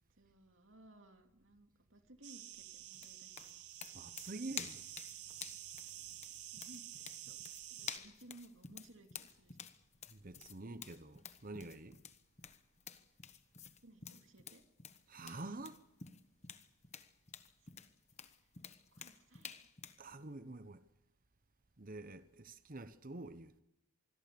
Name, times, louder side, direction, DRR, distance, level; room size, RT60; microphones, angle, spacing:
voice 1, 0.1-3.6 6.5-7.4 7.7-9.7 13.8-14.6 17.6-17.8 18.2-18.5 18.9-19.7, right 1 dB, 60° right, 2.6 m, -60 dB
sound 1, 2.2-8.0, right 12 dB, 85° right, 1.5 m, -50 dB
sound 2, 2.9-20.0, left 7 dB, 30° left, 1.2 m, -51 dB
voice 2, 3.9-4.9 10.1-12.0 15.1-15.8 20.0-20.8 21.8-23.6, right 2 dB, 40° right, 0.9 m, -47 dB
26.0 x 21.5 x 6.9 m
head